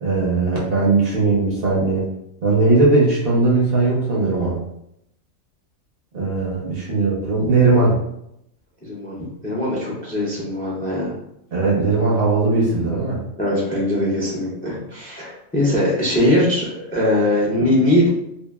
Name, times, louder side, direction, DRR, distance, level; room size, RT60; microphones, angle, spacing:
voice 1, 0.0-2.1 2.4-4.6 6.1-8.0 11.5-13.2, right 3 dB, 55° right, -4 dB, 0.8 m, -18 dB
voice 2, 8.8-9.2 9.4-11.1 13.4-18.1, left 1 dB, 10° left, -5 dB, 0.4 m, -21 dB
2.7 x 2.5 x 2.3 m, 0.79 s
omnidirectional pair, 1.4 m